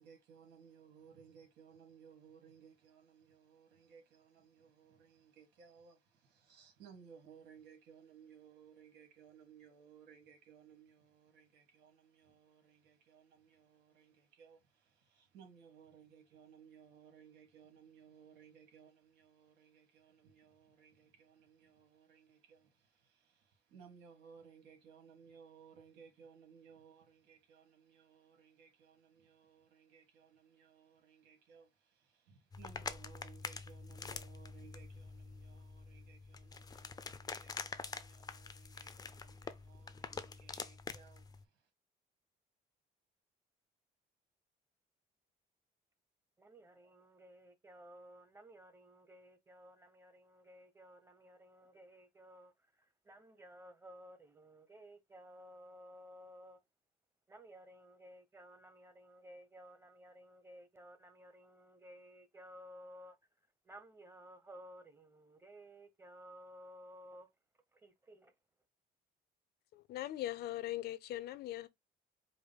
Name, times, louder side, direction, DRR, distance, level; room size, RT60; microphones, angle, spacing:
voice 1, 0.0-41.7, right 7 dB, 85° right, 1.8 m, -61 dB
sound 1, 32.5-41.4, left 4 dB, 20° left, 0.5 m, -46 dB
voice 2, 46.4-56.6 57.3-63.2 63.6-67.3 67.7-68.3, equal, 15° right, 1.0 m, -56 dB
voice 3, 69.7-71.7, left 14 dB, 70° left, 0.7 m, -40 dB
5.0 x 2.2 x 3.5 m
cardioid pair, 110°, 17 cm